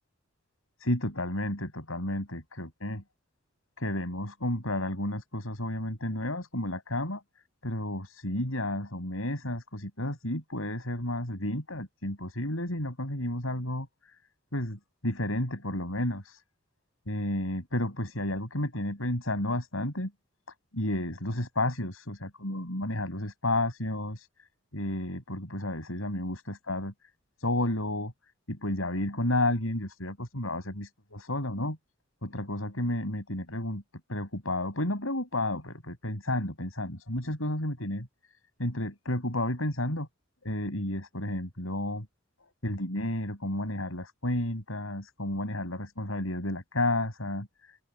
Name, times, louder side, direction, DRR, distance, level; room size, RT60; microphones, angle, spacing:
voice 1, 0.8-3.0 3.8-7.2 7.6-13.9 14.5-16.4 17.1-20.1 20.7-24.3 24.7-26.9 27.4-28.1 28.5-31.8 32.2-33.8 34.1-38.1 38.6-40.1 40.4-42.1 42.6-47.5, left 1 dB, 80° left, 7.4 m, -31 dB
open air
head